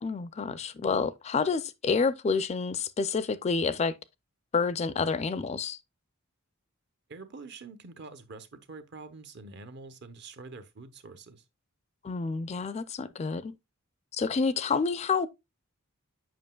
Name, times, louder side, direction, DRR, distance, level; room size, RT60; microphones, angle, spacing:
voice 1, 0.0-3.9 4.5-5.8 12.0-13.5 14.1-15.3, left 4 dB, 30° left, 0.3 m, -28 dB
voice 2, 7.1-11.4, right 3 dB, 55° right, 0.7 m, -46 dB
7.7 x 5.5 x 2.2 m
head